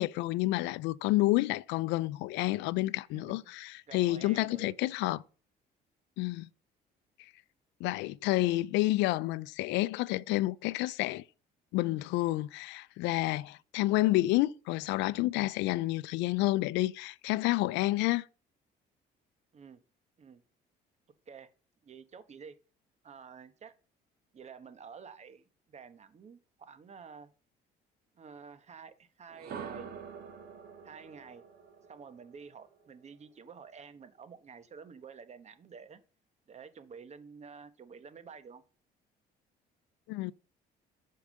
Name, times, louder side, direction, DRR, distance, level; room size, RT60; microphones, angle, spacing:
voice 1, 0.0-5.2 6.2-6.5 7.8-11.2 11.7-18.3 40.1-40.3, left 18 dB, 90° left, 0.4 m, -29 dB
voice 2, 3.9-5.2 19.5-19.8 20.2-20.4 21.3-21.5 21.8-22.6 23.0-23.7 24.3-27.3 28.1-29.9 30.8-31.4 31.9-36.0 36.5-38.6, right 6 dB, 40° right, 1.2 m, -50 dB
sound 1, 29.3-33.3, right 7 dB, 60° right, 2.1 m, -46 dB
8.4 x 4.7 x 6.5 m
cardioid pair, 100°, 18 cm